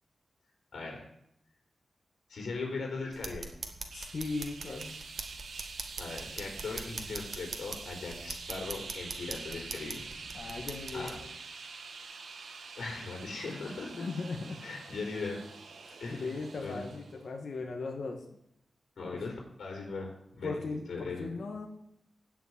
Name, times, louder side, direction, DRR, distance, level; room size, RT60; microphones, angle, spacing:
voice 1, 0.7-1.0 2.3-3.5 6.0-10.1 10.9-11.2 12.8-14.1 14.6-15.4 16.0-16.8 19.0-20.6 20.9-21.4, left 3 dB, 85° left, 0 dB, 3.7 m, -39 dB
sound 1, 3.1-11.2, right 3 dB, 50° right, 1.8 m, -43 dB
voice 2, 3.9-4.9 10.3-11.3 13.9-14.6 15.8-18.2 19.1-19.2 20.4-21.7, left 3 dB, 65° left, 2 dB, 1.8 m, -38 dB
sound 2, 3.9-17.2, right 4 dB, 90° right, 2.1 m, -46 dB
16.5 x 6.3 x 9.6 m, 0.77 s
wide cardioid pair, 105°, 0 cm